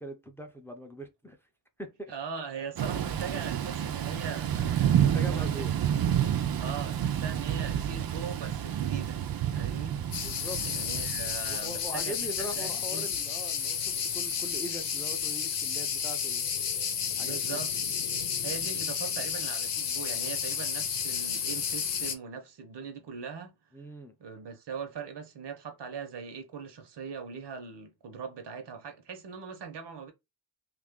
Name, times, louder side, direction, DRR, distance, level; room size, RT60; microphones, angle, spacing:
voice 1, 0.0-1.4 1.8-2.1 5.1-5.7 10.2-10.6 11.5-16.5 17.1-17.6 23.7-24.1, right 1 dB, 5° left, 0.5 m, -41 dB
voice 2, 2.1-5.7 6.6-9.2 9.5-10.0 10.3-13.1 17.2-17.8 18.4-23.6 24.2-30.1, right 6 dB, 80° right, 0.9 m, -40 dB
Thunder / Rain, 2.8-11.6, right 10 dB, 60° right, 0.5 m, -29 dB
sound 1, 10.1-22.1, left 7 dB, 80° left, 0.8 m, -32 dB
3.0 x 2.5 x 3.6 m
wide cardioid pair, 180°, 41 cm